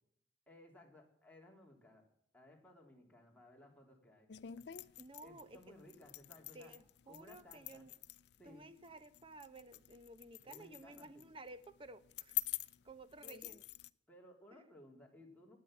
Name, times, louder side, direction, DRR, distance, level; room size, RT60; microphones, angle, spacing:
voice 1, 0.5-2.0 2.3-4.3 5.2-6.7 7.1-7.8 8.4-8.7 10.4-11.2 13.2-13.5 14.1-15.6, left 1 dB, 10° left, -1 dB, 3.3 m, -59 dB
sound 1, 4.3-13.9, left 16 dB, 70° left, 0.5 m, -47 dB
voice 2, 5.0-5.6 6.5-7.9 8.4-12.3 12.8-13.6 14.5-14.6, right 2 dB, 30° right, 12 dB, 1.0 m, -54 dB
16.5 x 9.7 x 7.6 m, 0.68 s
head